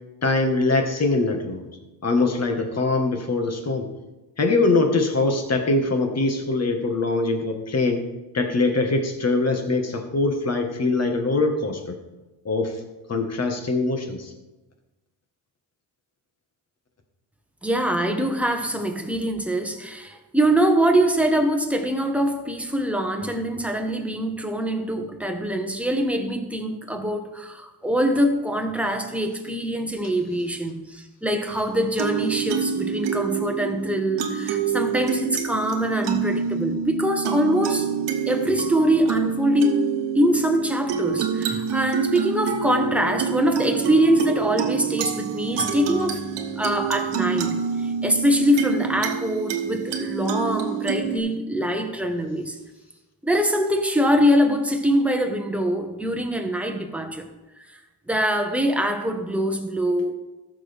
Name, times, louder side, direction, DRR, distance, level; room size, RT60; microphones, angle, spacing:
voice 1, 0.2-1.7 2.0-3.9 4.4-8.0 8.3-12.0 12.4-12.7 13.1-14.3, left 3 dB, 40° left, 5 dB, 1.5 m, -23 dB
voice 2, 17.6-37.9 38.3-46.3 46.6-52.6 53.2-57.2 58.1-60.1, equal, 5° right, 4 dB, 1.1 m, -23 dB
sound 1, 31.5-51.2, right 7 dB, 85° right, 1.1 m, -27 dB
14.5 x 6.5 x 3.5 m, 1.1 s
cardioid pair, 105°, 41 cm